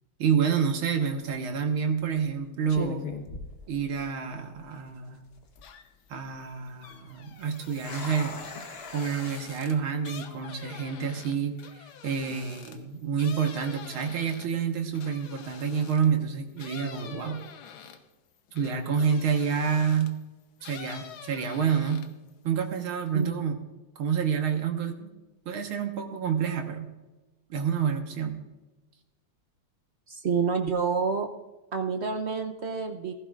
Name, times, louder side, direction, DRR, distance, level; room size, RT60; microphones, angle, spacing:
voice 1, 0.2-3.1 3.7-5.2 6.1-8.4 8.9-17.4 18.5-20.2 20.6-22.1 22.4-23.6 24.0-25.1 25.5-26.9 27.5-28.4, right 7 dB, 80° right, 4 dB, 2.1 m, -28 dB
sound 1, 1.1-1.4 2.2-2.4 2.7-4.3 4.6-4.7 5.3-5.7 7.4-9.4, left 3 dB, 35° left, 1.1 m, -39 dB
sound 2, 5.6-6.1 6.4-16.2 16.6-20.2 20.6-22.3 22.6-23.3, left 8 dB, 80° left, 1.8 m, -47 dB
voice 2, 30.1-31.3 31.7-33.1, right 5 dB, 65° right, 5 dB, 0.6 m, -28 dB
16.0 x 15.0 x 2.5 m, 1.1 s
omnidirectional pair, 2.3 m